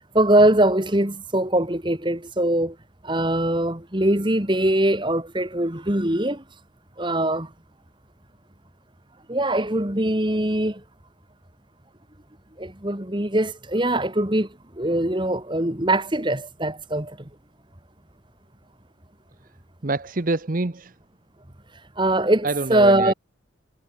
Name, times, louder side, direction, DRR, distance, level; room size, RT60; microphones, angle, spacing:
voice 1, 0.1-2.8 3.0-6.4 7.0-7.5 9.3-10.8 12.6-14.5 14.7-17.2 22.0-23.1, right 1 dB, 25° right, 2.1 m, -22 dB
voice 2, 19.8-20.9 22.4-23.1, right 2 dB, 45° right, 0.9 m, -26 dB
head